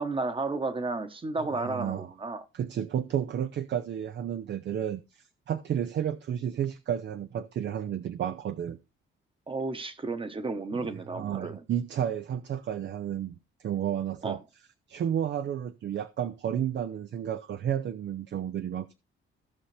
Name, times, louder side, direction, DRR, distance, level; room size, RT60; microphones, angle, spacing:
voice 1, 0.0-2.4 9.5-11.6 14.2-14.4, right 3 dB, 25° right, 1.1 m, -32 dB
voice 2, 1.5-2.1 2.5-8.8 10.7-14.4 14.9-19.0, right 9 dB, 60° right, 0.6 m, -32 dB
16.0 x 5.7 x 3.3 m
cardioid pair, 125°, 21 cm